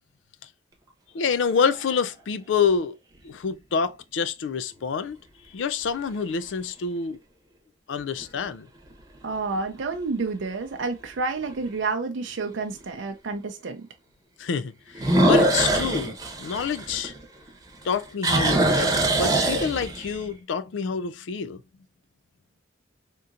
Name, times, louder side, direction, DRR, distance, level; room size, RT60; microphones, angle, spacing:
voice 1, 1.1-2.9 3.2-5.2 5.5-7.2 7.9-8.7 14.4-17.1 17.8-21.6, left 6 dB, 80° left, 0.4 m, -27 dB
sound 1, 1.3-2.0 2.6-2.7 8.0-8.4 8.9-9.0 9.6-9.7 9.9-10.0 11.5-11.6 14.9-17.5 17.8-20.2, right 1 dB, 20° right, 0.9 m, -23 dB
voice 2, 9.2-13.9, right 4 dB, 90° right, 0.5 m, -29 dB
3.6 x 2.8 x 2.4 m
head